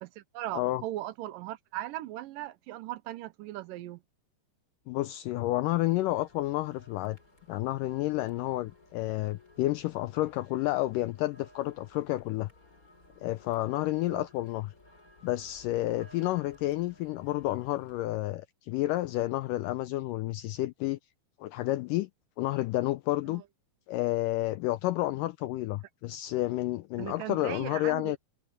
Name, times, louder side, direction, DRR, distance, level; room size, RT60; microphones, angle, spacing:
voice 1, 0.0-4.0 14.1-14.3 23.3-23.4 27.0-28.2, right 15 dB, 80° right, 2.1 m, -38 dB
voice 2, 4.9-7.2 7.5-12.5 13.2-14.7 15.2-21.0 21.4-22.1 22.4-23.4 23.9-28.2, left 16 dB, 85° left, 1.9 m, -30 dB
sound 1, 5.8-18.0, left 1 dB, 20° left, 4.5 m, -58 dB
omnidirectional pair, 4.4 m